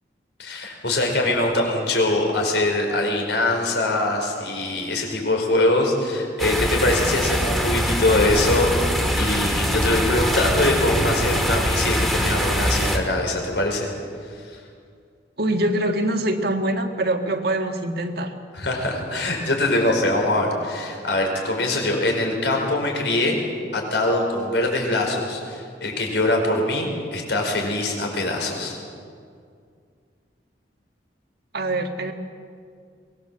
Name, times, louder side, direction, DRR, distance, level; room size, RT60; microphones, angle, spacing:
voice 1, 0.4-13.9 14.3-14.6 18.5-23.4 23.7-28.8, left 2 dB, 70° left, 2 dB, 5.2 m, -23 dB
sound 1, 6.4-13.0, equal, ahead, 2.3 m, -23 dB
voice 2, 15.4-18.3 31.5-32.1, right 1 dB, 60° right, 5 dB, 1.9 m, -24 dB
23.5 x 19.5 x 7.7 m, 2.2 s
head